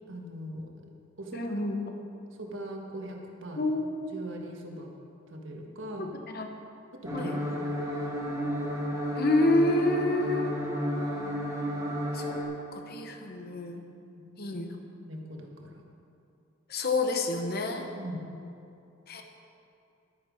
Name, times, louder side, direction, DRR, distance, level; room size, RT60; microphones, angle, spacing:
voice 1, 0.1-0.7 1.2-1.5 2.4-3.7 4.1-4.9 5.3-6.1 6.9-7.6 13.9-14.4 15.0-15.8 17.9-18.2, right 1 dB, 65° right, 1 dB, 1.5 m, -41 dB
voice 2, 1.3-1.8 3.5-3.9 6.0-6.5 7.1-7.3 9.1-10.6 12.1-12.4 12.7-13.8 14.4-14.7 16.7-17.9 19.1-19.2, left 2 dB, 50° left, 4 dB, 1.0 m, -28 dB
sound 1, 7.0-12.4, equal, 15° right, 1.4 m, -32 dB
11.5 x 10.0 x 5.1 m, 2.7 s
head